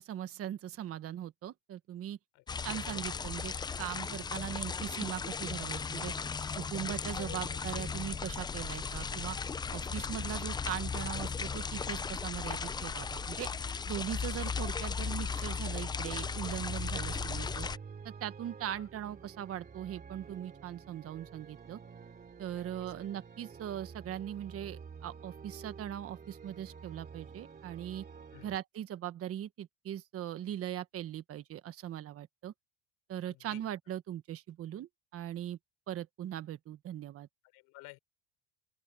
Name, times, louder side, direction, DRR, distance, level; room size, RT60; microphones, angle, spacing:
voice 1, 0.0-2.2 2.6-6.1 6.6-9.4 9.7-13.5 13.9-17.7 18.0-21.8 22.4-28.0 28.4-32.5 33.1-35.6 35.9-37.3, right 11 dB, 40° right, 1.3 m, -40 dB
voice 2, 2.3-3.0 7.2-7.9 18.7-18.9 22.5-22.9 28.3-28.6 33.3-33.6 37.4-38.0, left 23 dB, 75° left, 4.2 m, -53 dB
sound 1, 2.5-17.8, left 5 dB, 15° left, 0.4 m, -36 dB
sound 2, 15.3-28.6, right 6 dB, 25° right, 2.9 m, -49 dB
open air
cardioid pair, 120°, 34 cm